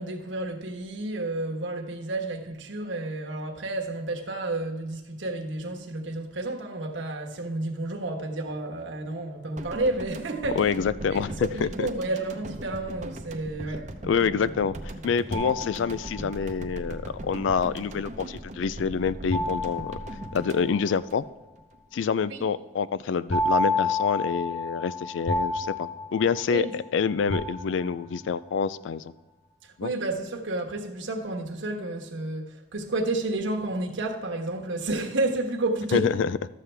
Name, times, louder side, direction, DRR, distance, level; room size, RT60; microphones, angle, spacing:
voice 1, 0.0-10.6 11.1-13.9 22.3-22.4 26.5-26.7 29.8-36.1, right 2 dB, 80° right, 1.2 m, -31 dB
sound 1, 9.6-21.8 22.0-22.2, right 1 dB, 40° right, 0.7 m, -39 dB
voice 2, 10.4-11.9 14.0-14.8 15.0-20.0 20.3-21.2 21.9-29.1 29.8-29.9 35.9-36.4, left 6 dB, 80° left, 0.4 m, -27 dB
sound 2, 15.3-16.5 19.3-20.9 23.3-26.9 27.3-28.2, left 2 dB, 30° left, 0.7 m, -30 dB
12.5 x 7.5 x 3.4 m
head